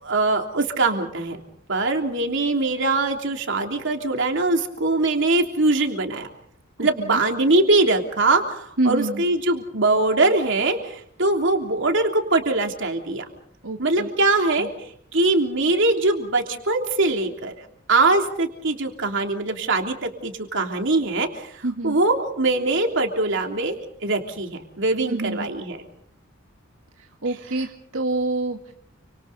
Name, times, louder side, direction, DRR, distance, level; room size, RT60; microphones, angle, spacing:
voice 1, 0.0-1.4 1.7-6.3 6.8-13.2 13.8-23.8 24.0-25.9, right 2 dB, 60° right, 3 dB, 3.3 m, -22 dB
voice 2, 6.8-7.2 8.8-9.2 13.6-14.1 14.6-14.7 21.6-22.0 25.1-25.5 27.0-28.7, right 2 dB, 90° right, 3 dB, 1.8 m, -27 dB
29.5 x 26.0 x 4.1 m, 0.63 s
head